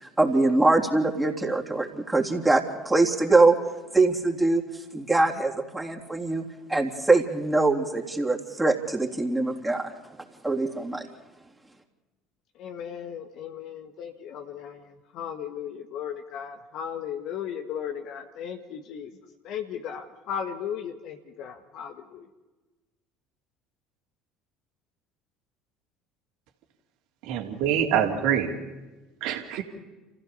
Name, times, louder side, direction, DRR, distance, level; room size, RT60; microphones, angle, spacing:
voice 1, 0.0-3.6 3.9-4.6 4.9-9.9 10.4-11.1, right 2 dB, 10° right, 0 dB, 3.4 m, -23 dB
voice 2, 12.6-22.3, left 8 dB, 55° left, 5 dB, 1.6 m, -36 dB
voice 3, 27.2-28.5 29.2-29.6, right 9 dB, 65° right, 4 dB, 3.0 m, -25 dB
29.5 x 16.0 x 7.0 m, 1.1 s
hypercardioid pair, 65°, 0 cm